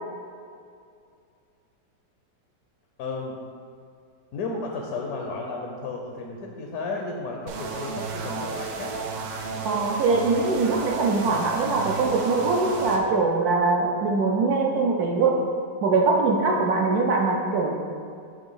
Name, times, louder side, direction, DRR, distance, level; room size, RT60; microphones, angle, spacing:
voice 1, 3.0-3.4 4.3-9.0, left 3 dB, 70° left, 1 dB, 0.9 m, -33 dB
sound 1, 7.5-13.0, right 4 dB, 90° right, 1.4 m, -32 dB
voice 2, 9.6-15.4 15.8-17.8, right 3 dB, 70° right, 0 dB, 0.9 m, -22 dB
7.0 x 3.2 x 5.5 m, 2.4 s
omnidirectional pair, 2.0 m